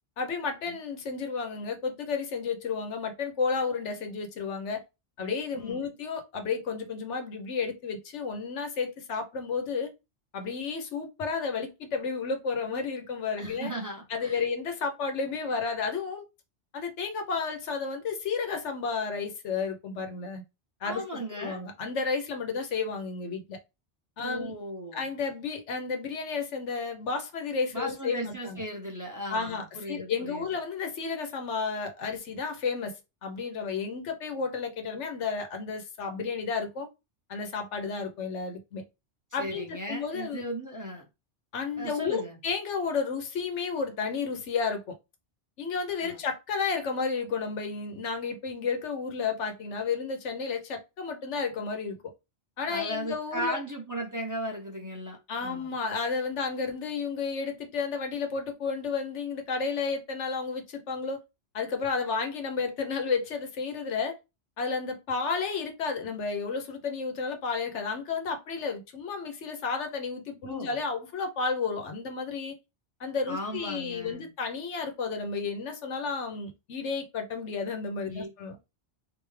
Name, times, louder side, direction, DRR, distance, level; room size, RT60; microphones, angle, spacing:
voice 1, 0.2-4.8 5.2-9.9 10.3-13.7 14.1-16.2 16.7-20.4 20.8-21.0 21.4-23.6 24.2-24.6 24.9-28.6 29.3-33.0 33.2-36.9 37.3-38.8 39.3-40.4 41.5-44.9 45.6-52.0 52.6-53.6 55.3-61.2 61.5-64.2 64.6-72.6 73.0-78.6, left 5 dB, 90° left, 1.1 m, -32 dB
voice 2, 13.4-14.4 20.8-21.6 24.2-25.0 27.7-30.5 39.3-41.1 41.8-42.4 46.0-46.2 52.7-55.7 70.4-70.7 73.3-74.3 78.1-78.3, equal, 20° right, 0.8 m, -37 dB
3.4 x 2.7 x 3.2 m
omnidirectional pair, 1.2 m